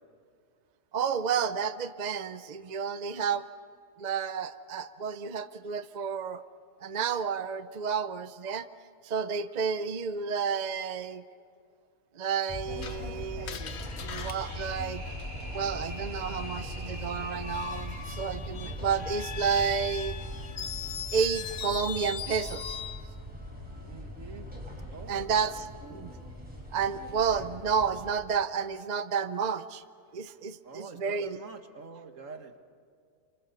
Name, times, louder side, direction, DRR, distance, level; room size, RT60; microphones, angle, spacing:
voice 1, 0.9-3.4 4.0-6.4 6.8-8.7 9.0-11.2 12.1-13.6 14.0-15.0 15.5-20.2 21.1-22.8 25.1-26.1 26.7-29.8 30.1-31.4, right 6 dB, 45° right, 11 dB, 0.6 m, -31 dB
sound 1, 12.5-28.1, left 1 dB, 5° right, 5.3 m, -40 dB
Screech, 12.8-15.7 17.3-23.1, left 7 dB, 55° left, 1.1 m, -40 dB
sound 2, 13.7-18.2, equal, 80° right, 3.9 m, -45 dB
voice 2, 23.9-24.5 24.9-25.4 25.8-26.1 30.6-32.6, right 4 dB, 65° right, 6 dB, 2.1 m, -46 dB
28.5 x 25.5 x 6.8 m, 2.2 s
omnidirectional pair, 1.5 m